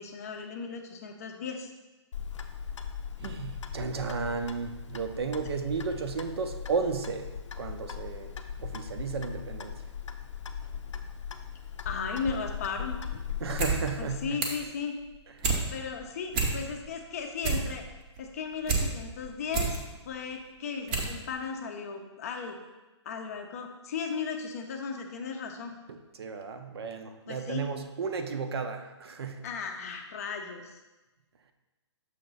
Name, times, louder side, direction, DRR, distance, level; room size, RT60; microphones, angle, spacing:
voice 1, 0.0-1.7 11.8-13.0 14.0-15.0 15.7-17.8 18.2-22.6 23.0-25.7 27.3-27.7 29.4-30.8, left 5 dB, 30° left, 3 dB, 0.6 m, -36 dB
Clock, 2.1-14.3, left 7 dB, 80° left, 0.6 m, -39 dB
voice 2, 3.2-7.3 7.6-9.8 13.4-14.4 15.4-15.6 25.9-29.4, right 5 dB, 60° right, 7 dB, 0.6 m, -34 dB
sound 1, 13.4-13.8 14.1-14.7 15.1-15.6 16.0-16.1 16.3-16.9 17.2-18.8 19.2-19.8 20.3-20.4 20.9-21.1 21.4-21.5, right 4 dB, 20° right, 0.6 m, -28 dB
6.4 x 3.0 x 5.3 m, 1.1 s
hypercardioid pair, 165°, 15 cm